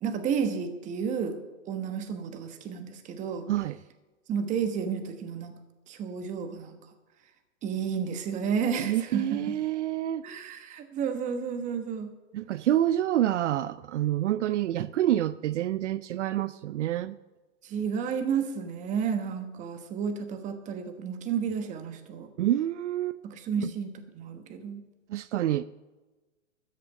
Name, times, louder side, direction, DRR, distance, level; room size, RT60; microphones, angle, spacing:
voice 1, 0.0-3.5 4.3-5.5 5.9-6.8 7.6-9.4 10.2-12.1 17.6-22.3 23.2-24.9, right 6 dB, 20° right, 8 dB, 1.2 m, -31 dB
voice 2, 8.8-10.3 12.3-17.2 22.4-23.2 23.6-23.7 25.1-25.6, right 12 dB, 70° right, 16 dB, 0.5 m, -27 dB
13.5 x 6.8 x 8.1 m, 1.2 s
hypercardioid pair, 145°, 38 cm